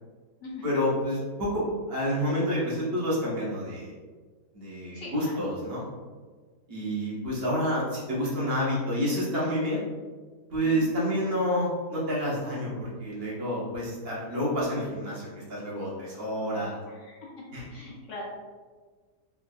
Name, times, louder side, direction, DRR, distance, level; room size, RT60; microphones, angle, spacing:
voice 1, 0.6-3.9 4.5-5.9 6.7-9.8 10.5-16.8 17.5-17.6, equal, 50° right, -6 dB, 0.8 m, -29 dB
voice 2, 4.9-5.5 10.6-10.9 16.9-18.2, left 3 dB, 65° left, -4 dB, 0.7 m, -42 dB
3.4 x 2.3 x 2.2 m, 1.4 s
omnidirectional pair, 1.7 m